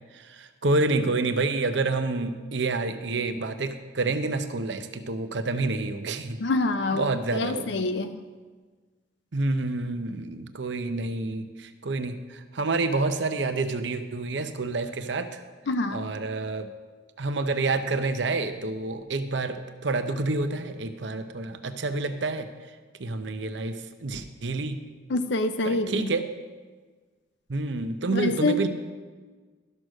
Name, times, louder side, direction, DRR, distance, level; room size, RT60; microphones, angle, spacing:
voice 1, 0.1-6.4 6.9-7.8 9.3-15.4 15.9-16.7 17.2-22.5 23.0-24.8 25.6-26.3 27.5-28.7, right 3 dB, 70° right, 9 dB, 0.7 m, -28 dB
voice 2, 6.4-8.2 15.7-16.1 25.1-26.1 28.1-28.7, left 2 dB, 65° left, 8 dB, 0.5 m, -26 dB
12.0 x 6.4 x 6.3 m, 1.4 s
head